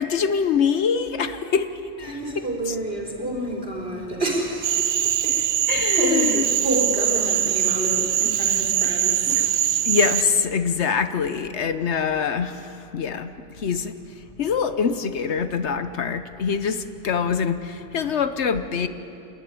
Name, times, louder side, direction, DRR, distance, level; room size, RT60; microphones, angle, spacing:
voice 1, 0.0-1.7 2.0-2.2 5.7-6.4 9.4-9.5 9.8-13.9 14.4-18.9, left 6 dB, 65° left, 10 dB, 1.1 m, -24 dB
voice 2, 2.0-5.6 6.0-9.9, right 1 dB, 50° right, -2 dB, 4.1 m, -29 dB
Cricket / Frog, 4.6-10.2, right 10 dB, 90° right, 1.1 m, -22 dB
28.0 x 11.5 x 9.9 m, 2.8 s
omnidirectional pair, 1.3 m